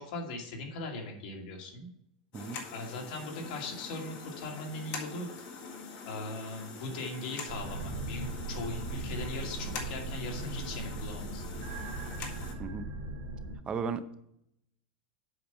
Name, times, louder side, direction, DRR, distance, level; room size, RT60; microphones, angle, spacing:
voice 1, 0.0-1.9 2.7-5.3 6.0-11.4, left 2 dB, 65° left, 1 dB, 2.3 m, -39 dB
sound 1, 2.3-12.5, left 5 dB, 50° left, 1.7 m, -44 dB
sound 2, 7.4-13.6, right 3 dB, 60° right, 1.9 m, -38 dB
voice 2, 13.7-14.1, right 5 dB, 20° right, 11 dB, 0.6 m, -35 dB
7.9 x 5.2 x 5.7 m, 0.76 s
supercardioid pair, 145°, 5 cm